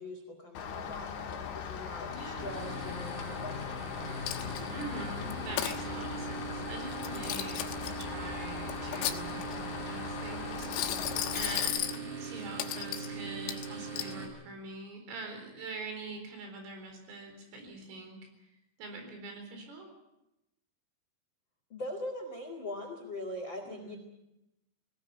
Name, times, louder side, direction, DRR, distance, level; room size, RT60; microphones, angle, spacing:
voice 1, 0.0-3.9 21.7-24.0, left 1 dB, 50° left, 4 dB, 1.4 m, -42 dB
Rain, 0.6-11.7, left 7 dB, 70° left, 4.4 m, -40 dB
voice 2, 2.1-2.5 4.7-11.0 11.3-18.2 18.8-19.9 23.6-24.0, right 3 dB, 75° right, 5 dB, 6.6 m, -44 dB
sound 1, 2.4-14.3, right 3 dB, 40° right, 5.1 m, -41 dB
Coin (dropping), 4.3-4.8 5.3-5.8 6.9-8.0 8.7-9.6 10.6-12.0 12.6-13.1 13.5-14.1, left 12 dB, 90° left, 4.0 m, -35 dB
18.5 x 18.5 x 9.5 m, 0.91 s
omnidirectional pair, 5.9 m